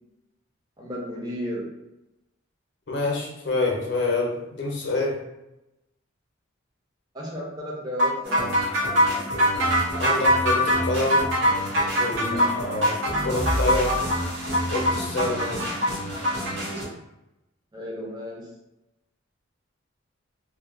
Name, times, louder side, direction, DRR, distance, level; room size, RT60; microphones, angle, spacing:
voice 1, 0.8-1.7 7.1-8.6 12.2-12.7 15.2-15.6 17.7-18.5, equal, 20° right, -3 dB, 0.5 m, -34 dB
voice 2, 2.9-5.2 10.0-11.3 12.0-13.0 13.2-14.1 14.7-15.5, left 2 dB, 60° left, 0 dB, 0.6 m, -27 dB
sound 1, 8.0-16.6, equal, 75° right, 0.7 m, -22 dB
sound 2, 8.2-16.8, equal, 55° right, 1.3 m, -31 dB
2.5 x 2.2 x 2.4 m, 0.91 s
head